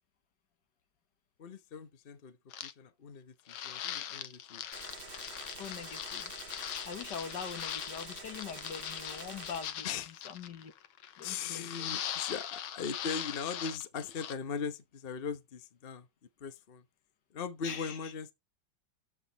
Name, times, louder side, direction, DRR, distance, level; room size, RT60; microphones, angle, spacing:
voice 1, 1.4-4.6 9.8-10.2 11.2-16.1 16.4-16.8 17.3-18.3, left 6 dB, 40° left, 0.9 m, -40 dB
sound 1, 2.5-2.7 3.5-14.3, left 10 dB, 90° left, 1.7 m, -41 dB
Gunshot gunfire, 4.7-9.7, right 3 dB, 65° right, 3.8 m, -48 dB
voice 2, 5.6-6.3 6.7-10.0 10.3-10.7 11.2-11.9 17.6-17.9, left 7 dB, 60° left, 1.8 m, -43 dB
13.5 x 5.0 x 4.0 m
omnidirectional pair, 2.2 m